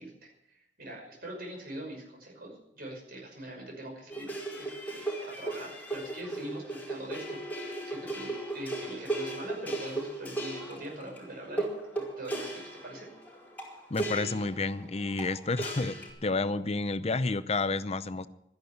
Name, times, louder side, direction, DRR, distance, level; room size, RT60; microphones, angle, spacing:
voice 1, 0.0-11.7 11.9-13.1, right 1 dB, 55° right, 0 dB, 5.7 m, -43 dB
sound 1, 4.1-16.1, right 2 dB, 10° left, 5.1 m, -37 dB
voice 2, 13.9-18.3, left 3 dB, 35° left, 13 dB, 0.7 m, -30 dB
13.5 x 10.5 x 8.0 m, 0.79 s
head